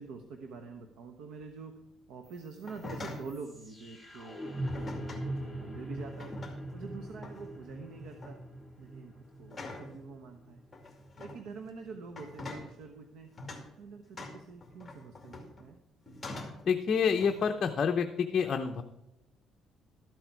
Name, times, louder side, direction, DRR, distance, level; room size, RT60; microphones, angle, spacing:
voice 1, 0.0-1.8 2.1-6.4 6.7-8.4 8.8-10.6 11.2-13.3 13.7-15.8, right 4 dB, 85° right, 5 dB, 1.1 m, -46 dB
sound 1, 2.3-12.3, right 1 dB, 5° right, 1.9 m, -42 dB
sound 2, 2.6-3.3 4.7-5.3 6.0-6.8 7.2-7.5 8.0-8.4 9.5-9.9 10.7-11.4 12.1-12.7 13.4-13.7 14.2-15.6 16.1-16.7 17.2-17.6, left 2 dB, 15° left, 2.5 m, -44 dB
voice 2, 16.6-18.8, left 6 dB, 40° left, 5 dB, 0.8 m, -28 dB
13.0 x 8.0 x 4.7 m, 0.92 s
cardioid pair, 140°, 0 cm